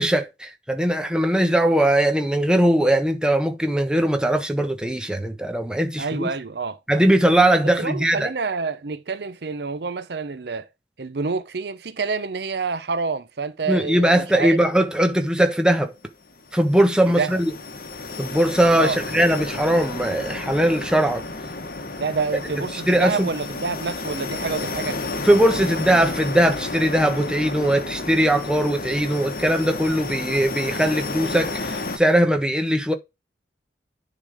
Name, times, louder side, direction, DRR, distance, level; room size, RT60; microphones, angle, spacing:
voice 1, 0.0-6.3 6.9-8.3 13.7-15.9 16.5-17.5 18.2-21.2 22.9-23.3 25.2-32.9, right 1 dB, 5° right, 1.2 m, -20 dB
voice 2, 6.0-6.8 7.6-10.7 11.0-14.6 17.2-17.4 18.8-19.0 22.0-25.0, right 4 dB, 65° right, 0.7 m, -28 dB
sound 1, 16.3-32.0, left 3 dB, 50° left, 1.3 m, -31 dB
10.5 x 3.9 x 4.9 m
head